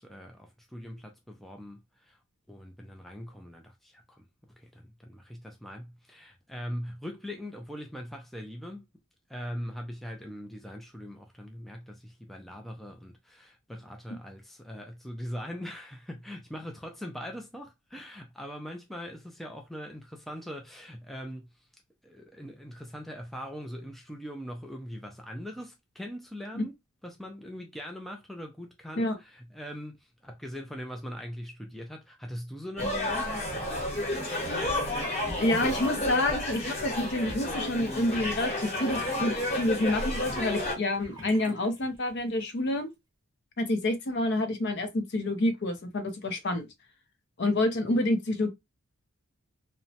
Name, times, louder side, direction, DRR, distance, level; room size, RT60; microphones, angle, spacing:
voice 1, 0.0-2.2 2.5-8.8 9.3-21.7 22.0-26.8 27.0-33.3, equal, ahead, 0.3 m, -41 dB
sound 1, 32.8-40.7, left 1 dB, 30° left, 1.0 m, -31 dB
Sink (filling or washing) / Bathtub (filling or washing), 35.3-42.6, left 1 dB, 20° right, 0.7 m, -47 dB
voice 2, 35.4-42.9 43.6-46.7 47.4-48.5, left 1 dB, 50° left, 0.5 m, -28 dB
2.9 x 2.1 x 2.7 m
head